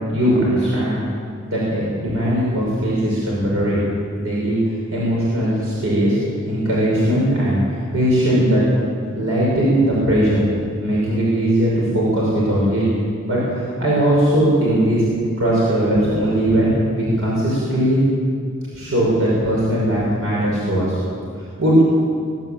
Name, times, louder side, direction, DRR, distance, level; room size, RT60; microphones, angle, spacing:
voice 1, 0.1-1.0 1.5-3.8 4.2-4.6 4.9-6.2 6.5-7.6 7.9-8.6 9.1-10.4 10.8-12.9 13.3-15.0 15.4-16.7 16.9-18.0 18.7-21.0 21.6-21.8, right 1 dB, 90° right, -6 dB, 6.2 m, -19 dB
22.0 x 13.5 x 9.1 m, 2.3 s
head